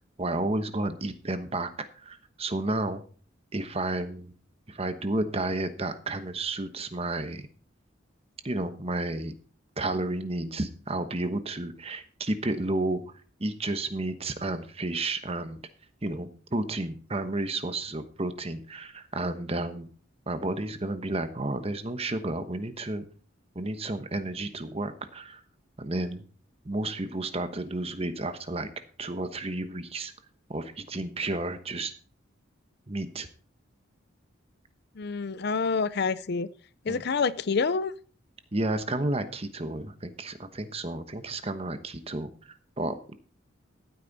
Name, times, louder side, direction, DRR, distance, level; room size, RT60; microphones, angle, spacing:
voice 1, 0.2-3.0 3.5-4.3 4.7-7.5 8.4-9.3 9.8-13.0 13.4-15.6 16.0-19.9 20.3-23.1 23.5-25.4 25.8-26.2 26.6-28.7 29.0-30.1 30.5-31.9 32.9-33.3 36.9-37.0 38.5-43.1, right 2 dB, 30° right, 10 dB, 1.1 m, -31 dB
voice 2, 35.0-36.5 36.8-37.9, left 4 dB, 55° left, 17 dB, 0.5 m, -27 dB
14.5 x 8.9 x 4.1 m, 0.41 s
head